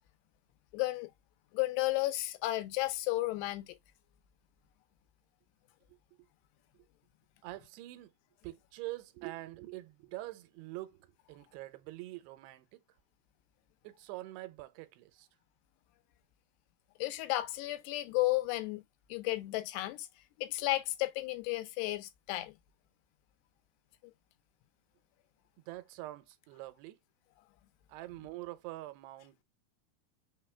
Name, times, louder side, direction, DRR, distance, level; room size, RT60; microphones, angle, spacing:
voice 1, 0.7-1.1 1.5-3.7 17.0-18.8 19.1-20.1 20.4-22.5, left 18 dB, 90° left, 2.8 m, -33 dB
voice 2, 5.9-6.3 7.4-8.1 8.4-12.8 13.8-15.3 25.6-27.0 27.9-29.4, right 18 dB, 85° right, 2.7 m, -45 dB
6.2 x 2.3 x 3.2 m
omnidirectional pair, 4.6 m